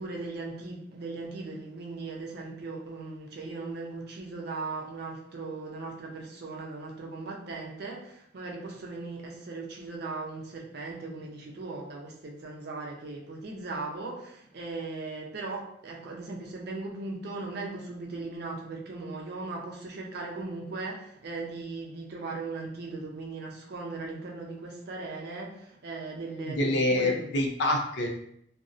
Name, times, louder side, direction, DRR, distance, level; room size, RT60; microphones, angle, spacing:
voice 1, 0.0-27.3, right 3 dB, 60° right, -1 dB, 0.5 m, -38 dB
voice 2, 26.4-28.1, left 1 dB, 65° left, 3 dB, 0.4 m, -26 dB
2.6 x 2.0 x 2.4 m, 0.72 s
head